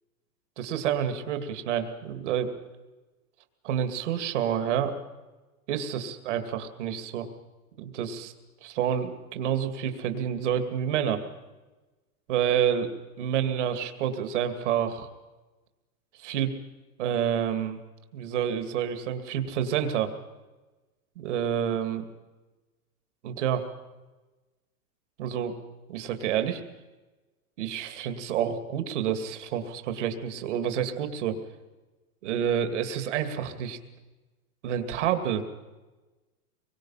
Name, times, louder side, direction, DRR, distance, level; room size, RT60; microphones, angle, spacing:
voice 1, 0.6-2.6 3.6-4.9 5.7-7.3 7.8-8.3 8.6-11.2 12.3-12.9 13.2-15.1 16.2-16.5 17.0-17.8 18.1-20.1 21.2-22.1 23.2-23.7 25.2-25.5 25.9-26.6 27.6-31.3 32.2-33.8 34.6-35.4, right 9 dB, 50° right, 8 dB, 2.6 m, -28 dB
25.5 x 23.5 x 5.8 m, 1.2 s
supercardioid pair, 180°, 46 cm